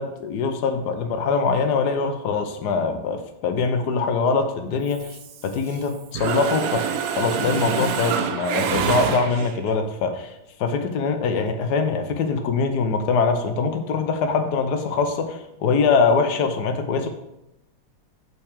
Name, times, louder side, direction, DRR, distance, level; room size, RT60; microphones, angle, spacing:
voice 1, 0.0-6.8 7.2-17.1, left 4 dB, 60° left, 7 dB, 1.2 m, -23 dB
Mechanisms, 4.9-5.8 6.1-9.7, right 7 dB, 85° right, 0.7 m, -26 dB
5.8 x 4.6 x 6.5 m, 0.87 s
omnidirectional pair, 2.3 m